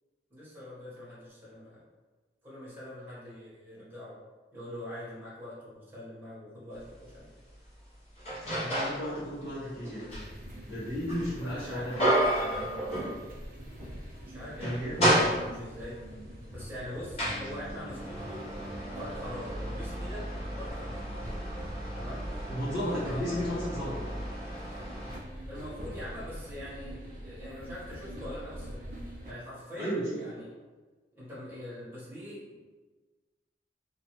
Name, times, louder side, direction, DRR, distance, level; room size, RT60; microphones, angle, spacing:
voice 1, 0.3-1.8 2.4-4.2 4.5-7.3 11.4-11.9 14.2-16.0 16.5-18.5 18.9-21.4 21.9-22.2 22.9-23.6 25.5-28.8 29.2-30.5 31.2-32.4, left 1 dB, 10° right, -9 dB, 1.0 m, -43 dB
sound 1, 6.8-6.9 7.5-9.1 9.5-13.6 13.9-14.0 14.4-15.9 16.6-25.2, right 1 dB, 35° left, 0.8 m, -32 dB
voice 2, 8.4-10.1 10.7-12.1 12.4-12.7 14.6-15.1 22.5-24.0 29.8-30.0, equal, 55° left, -16 dB, 1.4 m, -34 dB
sound 2, 10.1-29.3, equal, 45° right, 0.5 m, -44 dB
3.0 x 2.3 x 2.9 m, 1.3 s
head